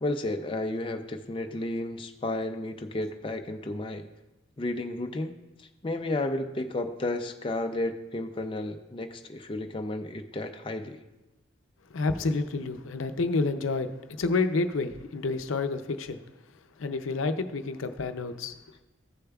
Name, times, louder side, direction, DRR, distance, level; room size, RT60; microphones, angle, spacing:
voice 1, 0.0-4.1 4.6-11.0, left 2 dB, 25° left, 0.4 m, -32 dB
voice 2, 11.9-13.9 14.2-16.2 16.8-18.5, left 3 dB, 85° left, 0.6 m, -29 dB
14.5 x 6.7 x 2.3 m
head